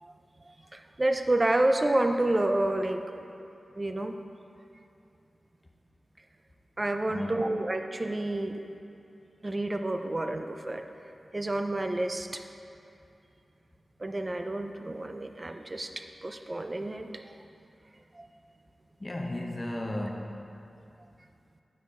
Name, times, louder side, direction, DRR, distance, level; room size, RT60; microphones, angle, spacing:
voice 1, 0.7-3.0 3.8-4.2 6.8-8.6 9.4-10.8 11.3-12.4 14.0-15.9 16.2-17.3 18.1-18.3, right 1 dB, 30° right, 6 dB, 0.4 m, -29 dB
voice 2, 7.1-7.6 19.0-20.4, left 1 dB, 30° left, 1 dB, 0.6 m, -35 dB
9.3 x 6.1 x 3.6 m, 2.7 s
wide cardioid pair, 95°, 0 cm